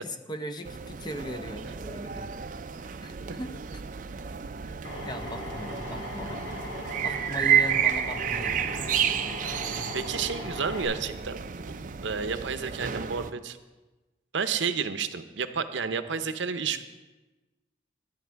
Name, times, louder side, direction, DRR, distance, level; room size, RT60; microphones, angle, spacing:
voice 1, 0.0-2.4 3.0-3.8 4.6-4.7 5.0-6.6 7.0-8.5, left 1 dB, 20° left, 8 dB, 0.6 m, -39 dB
sound 1, 0.6-13.3, right 8 dB, 45° right, 0.4 m, -31 dB
Drill, 4.8-10.8, equal, 85° left, 4.2 m, -38 dB
voice 2, 9.9-11.7 12.0-13.6 14.3-16.8, right 6 dB, 80° right, 10 dB, 0.7 m, -31 dB
11.5 x 10.5 x 4.6 m, 1.2 s
head